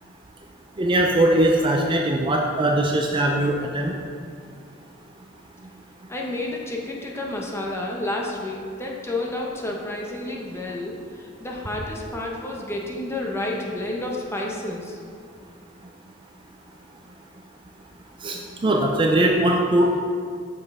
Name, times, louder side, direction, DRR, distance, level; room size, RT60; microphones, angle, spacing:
voice 1, 0.8-3.9 18.2-20.0, right 1 dB, 25° right, 0 dB, 0.5 m, -20 dB
voice 2, 6.1-15.0, left 1 dB, 15° left, -1 dB, 0.9 m, -30 dB
6.5 x 5.6 x 4.8 m, 2.2 s
head